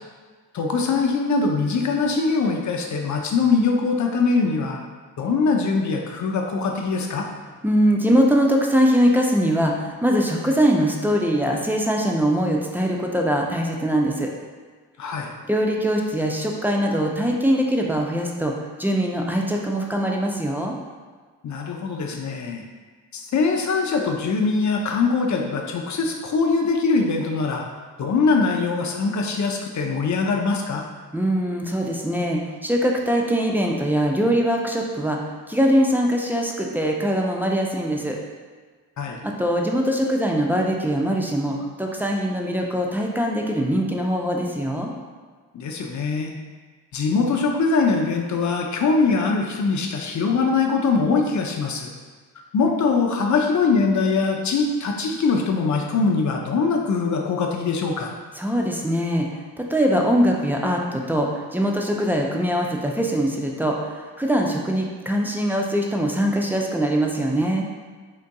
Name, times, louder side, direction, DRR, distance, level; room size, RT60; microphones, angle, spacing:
voice 1, 0.5-4.8 5.2-7.3 15.0-15.3 21.4-22.6 23.1-27.7 28.0-30.8 39.0-39.2 45.5-46.3 46.9-51.9 52.5-58.1, left 4 dB, 40° left, 1 dB, 0.6 m, -22 dB
voice 2, 7.6-14.3 15.5-18.5 18.8-20.8 31.1-35.2 35.5-38.2 39.2-44.9 58.4-59.3 59.6-67.6, equal, 5° right, 0 dB, 0.4 m, -22 dB
3.7 x 2.5 x 2.3 m, 1.5 s
hypercardioid pair, 40°, 45 cm